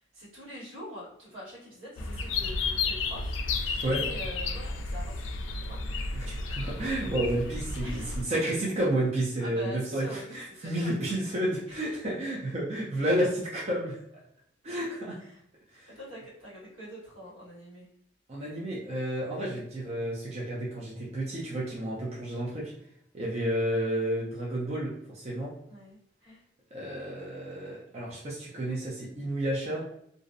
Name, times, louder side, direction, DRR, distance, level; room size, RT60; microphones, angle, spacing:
voice 1, 0.1-3.4 3.9-5.2 5.7-5.8 7.8-8.3 9.4-10.9 11.8-12.1 12.8-13.2 15.2-15.4 15.9-17.9 25.7-26.4, equal, 80° right, -8 dB, 1.4 m, -44 dB
sound 1, 2.0-8.2, left 3 dB, 75° left, 0.3 m, -32 dB
voice 2, 6.1-14.0 14.6-15.2 15.7-15.9 18.3-22.7 23.1-25.5 26.7-29.8, right 1 dB, 35° right, -6 dB, 0.5 m, -31 dB
2.5 x 2.0 x 2.5 m, 0.74 s
head